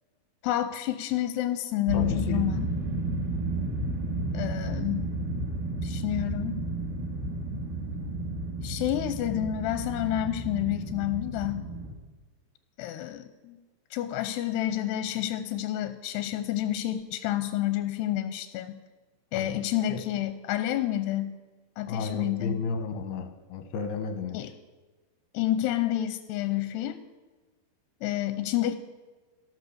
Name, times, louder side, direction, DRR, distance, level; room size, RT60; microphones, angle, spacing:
voice 1, 0.4-2.7 4.3-5.1 5.8-6.7 8.6-11.7 12.8-13.6 13.9-18.8 19.3-21.4 21.8-22.6 24.3-24.5 25.3-27.0 28.0-28.8, left 13 dB, 90° left, 10 dB, 2.8 m, -29 dB
voice 2, 1.9-2.4 19.3-19.6 19.9-20.0 21.9-24.5, left 4 dB, 75° left, 7 dB, 3.1 m, -33 dB
sound 1, 1.9-11.9, right 2 dB, 65° right, 3.9 m, -32 dB
14.0 x 13.5 x 6.8 m, 1.3 s
omnidirectional pair, 4.8 m